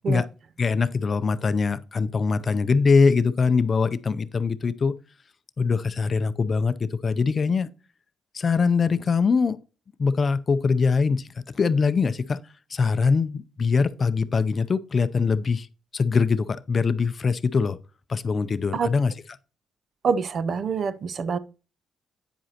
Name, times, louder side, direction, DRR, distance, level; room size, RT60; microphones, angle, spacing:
voice 1, 0.6-5.0 5.6-7.7 8.3-9.6 10.0-11.3 11.5-12.4 12.7-15.7 15.9-17.8 18.1-19.4, left 5 dB, 40° left, 0.5 m, -22 dB
voice 2, 20.0-21.4, right 5 dB, 50° right, 0.5 m, -25 dB
9.0 x 7.6 x 2.9 m
cardioid pair, 90°, 0 cm